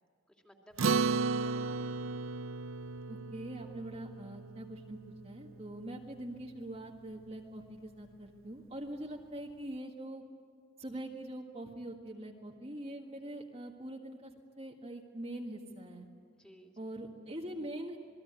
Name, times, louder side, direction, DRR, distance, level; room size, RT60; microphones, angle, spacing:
voice 1, 0.4-2.1 16.4-16.9, equal, 5° left, 1 dB, 2.9 m, -57 dB
Acoustic guitar, 0.8-5.5, right 4 dB, 75° right, 0.6 m, -34 dB
voice 2, 3.1-5.0 5.2-10.2 10.8-14.3 14.6-16.1 16.8-18.0, right 1 dB, 30° right, 0 dB, 1.7 m, -43 dB
27.5 x 21.0 x 9.4 m, 2.1 s
head